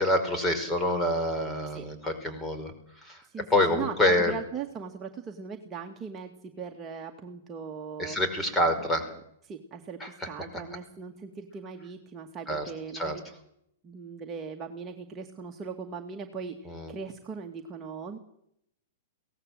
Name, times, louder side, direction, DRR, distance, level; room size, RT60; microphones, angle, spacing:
voice 1, 0.0-2.7 3.0-3.2 3.5-4.3 8.0-9.1 10.0-10.3 12.5-13.2 16.7-16.9, left 1 dB, 10° left, 6 dB, 5.2 m, -27 dB
voice 2, 3.2-8.2 8.6-8.9 9.4-13.2 13.8-18.2, right 6 dB, 25° right, 2 dB, 2.2 m, -39 dB
23.0 x 18.0 x 7.8 m, 0.74 s
figure-of-eight pair, 105°, 0 cm